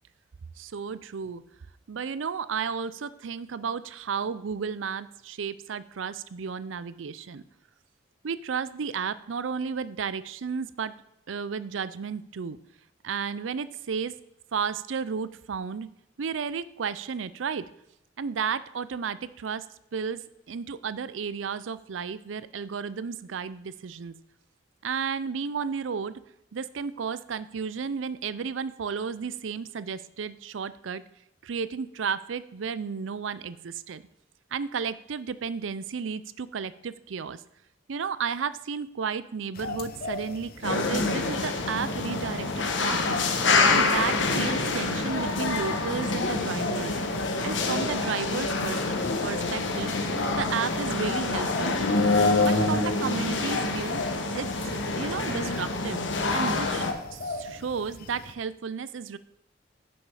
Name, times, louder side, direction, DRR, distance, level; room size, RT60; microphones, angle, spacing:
voice 1, 0.6-1.4 1.9-7.4 8.2-10.9 11.3-12.6 13.0-14.1 14.5-15.9 16.2-17.7 18.2-19.7 19.9-24.2 24.8-26.2 26.5-31.0 31.4-34.0 34.5-37.4 37.9-43.2 43.7-46.9 47.4-48.8 49.2-50.0 50.3-51.8 52.4-54.0 54.3-59.2, right 6 dB, 90° right, 16 dB, 0.5 m, -33 dB
sound 1, 39.6-58.4, left 3 dB, 55° left, 0.7 m, -40 dB
sound 2, 40.6-56.9, left 3 dB, 70° left, 1.3 m, -26 dB
10.0 x 7.1 x 4.9 m, 0.79 s
head